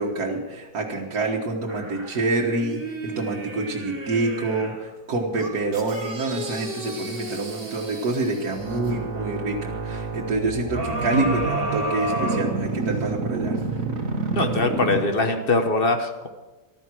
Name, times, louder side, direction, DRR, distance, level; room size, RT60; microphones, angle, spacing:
voice 1, 0.0-13.6, right 2 dB, 80° right, -2 dB, 2.1 m, -27 dB
sound 1, 1.7-4.8 5.4-9.0 10.7-13.1 13.6-13.7, right 1 dB, 40° right, 2.0 m, -32 dB
sound 2, 8.5-15.5, right 4 dB, 60° right, 1.9 m, -29 dB
voice 2, 14.3-16.3, left 3 dB, 40° left, 6 dB, 1.4 m, -22 dB
14.5 x 12.5 x 6.1 m, 1.1 s
omnidirectional pair, 1.6 m